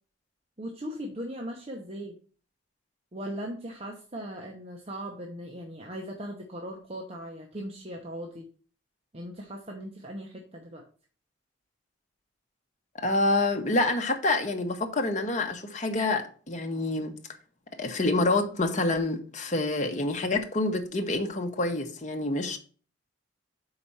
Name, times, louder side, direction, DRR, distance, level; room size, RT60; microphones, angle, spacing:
voice 1, 0.6-2.2 3.1-8.5 9.1-10.8, equal, 30° right, 0.9 m, -38 dB
voice 2, 13.0-17.1 17.7-22.6, left 2 dB, 40° left, 1.0 m, -27 dB
5.8 x 4.9 x 5.5 m
head